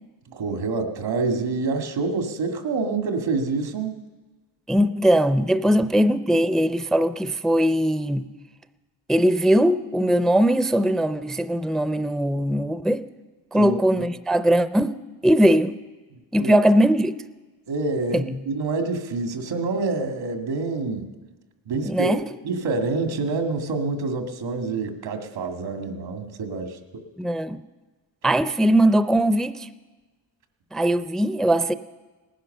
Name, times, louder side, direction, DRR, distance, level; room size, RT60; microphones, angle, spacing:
voice 1, 0.3-4.0 4.8-4.9 13.5-14.1 16.4-16.6 17.7-21.0 21.7-22.1 22.4-27.0, right 3 dB, 80° right, 2.1 m, -27 dB
voice 2, 4.7-8.3 9.1-13.0 13.5-15.0 15.2-15.7 16.3-17.1 18.1-18.2 21.8-22.2 27.2-27.6 28.2-29.7 30.7-31.7, right 1 dB, ahead, 0.4 m, -20 dB
18.5 x 10.5 x 6.6 m
cardioid pair, 80°, 44 cm